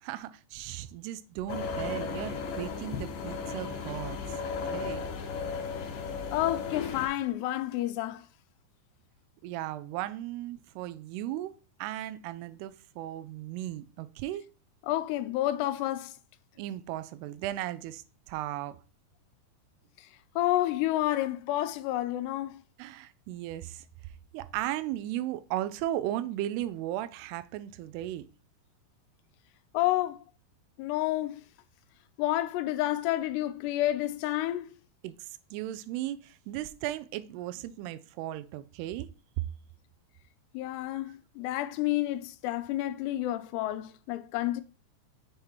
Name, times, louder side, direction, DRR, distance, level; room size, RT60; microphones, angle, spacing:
voice 1, 0.0-4.4 4.6-5.1 9.4-14.4 16.6-18.8 22.8-23.8 24.3-28.3 35.0-39.1 39.4-39.5, right 14 dB, 85° right, 2.5 m, -36 dB
sound 1, 1.5-7.1, left 5 dB, 70° left, 2.4 m, -35 dB
voice 2, 6.3-8.3 14.9-16.1 20.0-20.1 20.4-22.6 29.7-30.2 30.8-31.4 32.2-34.7 40.5-44.6, left 15 dB, 85° left, 2.7 m, -30 dB
7.3 x 5.0 x 3.0 m
omnidirectional pair, 4.8 m